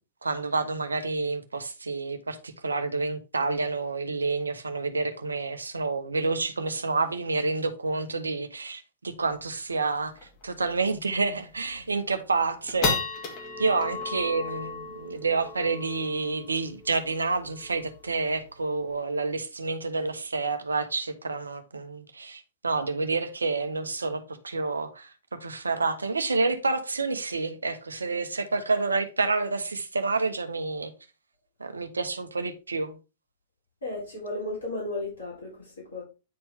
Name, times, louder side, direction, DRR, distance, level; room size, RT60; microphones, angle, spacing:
voice 1, 0.2-10.1 10.4-13.0 13.6-30.9 31.6-33.0, right 3 dB, 75° right, 0.9 m, -29 dB
sound 1, 9.3-9.4 9.7-9.8 10.2-10.4 10.9-11.0 11.5-11.9 12.3-18.9, left 4 dB, 40° left, 2.5 m, -35 dB
voice 2, 33.8-36.0, left 2 dB, 70° left, 3.6 m, -34 dB
9.5 x 4.4 x 3.5 m
figure-of-eight pair, 100°, 0 cm